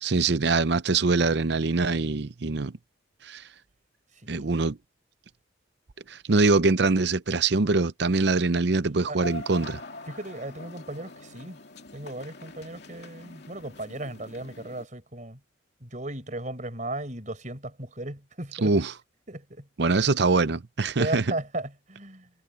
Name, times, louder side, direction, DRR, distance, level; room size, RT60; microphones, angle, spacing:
voice 1, 0.0-2.8 3.2-3.4 4.3-4.8 6.1-9.8 18.6-18.9 19.8-21.2, right 3 dB, 60° right, 0.7 m, -23 dB
voice 2, 4.2-4.5 9.1-9.2 10.1-11.6 11.9-15.4 15.8-18.8 19.3-19.7 21.0-22.3, right 1 dB, 40° right, 5.1 m, -36 dB
sound 1, 9.2-14.8, left 2 dB, 60° left, 2.9 m, -43 dB
head